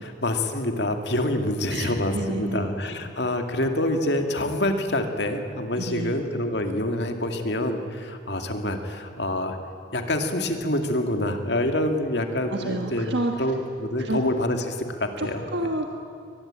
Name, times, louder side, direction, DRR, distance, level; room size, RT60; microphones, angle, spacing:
voice 1, 0.0-9.6 9.9-15.4, left 1 dB, 60° left, 5 dB, 2.3 m, -26 dB
voice 2, 1.7-2.7 5.8-6.2 12.5-13.3 14.0-14.2 15.2-15.8, right 1 dB, 65° right, 3 dB, 1.6 m, -29 dB
23.5 x 20.5 x 9.0 m, 2.4 s
head